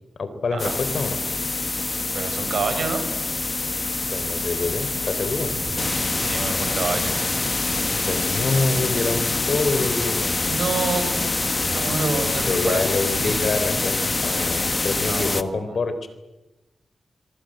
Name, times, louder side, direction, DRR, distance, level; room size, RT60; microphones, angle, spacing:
voice 1, 0.2-1.2 4.1-5.5 8.1-10.4 12.4-16.1, left 3 dB, 65° left, 11 dB, 3.9 m, -26 dB
sound 1, 0.6-15.4, left 3 dB, 35° left, 1.4 m, -25 dB
voice 2, 2.1-3.0 6.1-7.2 10.4-13.5 15.0-15.7, right 4 dB, 80° right, 7 dB, 5.3 m, -29 dB
sound 2, 5.5-14.4, right 3 dB, 55° right, 4.8 m, -40 dB
25.5 x 23.5 x 8.0 m, 1.0 s
cardioid pair, 65°, 0 cm